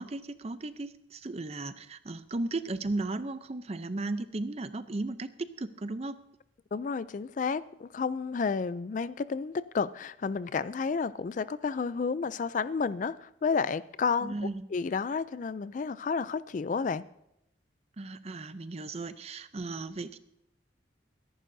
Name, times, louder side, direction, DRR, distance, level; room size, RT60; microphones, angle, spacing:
voice 1, 0.0-6.1 14.2-14.7 18.0-20.2, right 2 dB, 35° right, 13 dB, 0.6 m, -35 dB
voice 2, 6.7-14.3 14.7-17.0, left 5 dB, 40° left, 16 dB, 0.3 m, -31 dB
23.5 x 11.0 x 2.7 m, 0.81 s
head